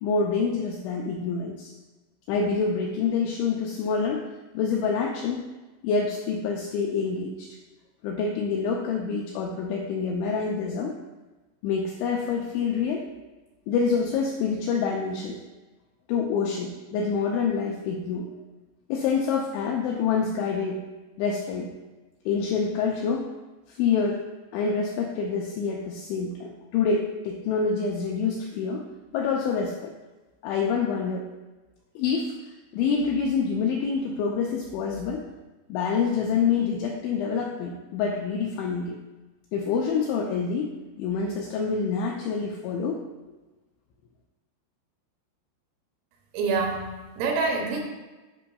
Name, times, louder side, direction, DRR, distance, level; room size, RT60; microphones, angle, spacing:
voice 1, 0.0-1.7 2.3-4.3 4.5-5.4 5.8-7.5 8.0-11.0 11.6-13.0 13.7-15.4 16.1-18.3 18.9-20.8 21.2-21.7 22.3-23.3 23.7-24.2 24.5-28.8 29.1-30.0 30.4-31.3 32.0-32.3 32.7-35.3 35.7-39.0 39.5-43.0, left 5 dB, 90° left, 0 dB, 2.6 m, -27 dB
voice 2, 46.3-47.8, right 4 dB, 90° right, 1 dB, 3.8 m, -26 dB
11.5 x 5.4 x 2.3 m, 1.2 s
omnidirectional pair, 5.9 m